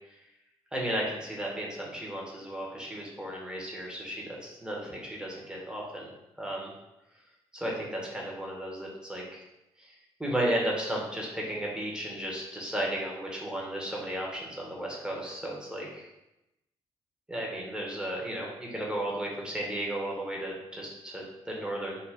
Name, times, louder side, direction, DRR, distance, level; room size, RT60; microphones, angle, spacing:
voice 1, 0.7-6.1 6.4-6.7 7.5-9.4 10.2-16.1 17.3-22.1, right 1 dB, 5° right, -3 dB, 0.9 m, -34 dB
2.4 x 2.1 x 3.4 m, 0.92 s
hypercardioid pair, 40°, 14 cm